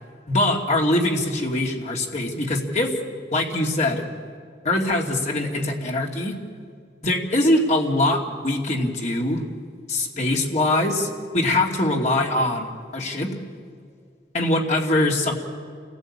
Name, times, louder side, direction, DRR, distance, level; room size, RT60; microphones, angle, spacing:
voice 1, 0.3-2.9 3.3-4.1 4.6-6.4 7.0-9.4 9.9-13.3 14.3-15.4, left 1 dB, 40° left, 1 dB, 2.7 m, -23 dB
28.5 x 17.5 x 8.8 m, 2.1 s
head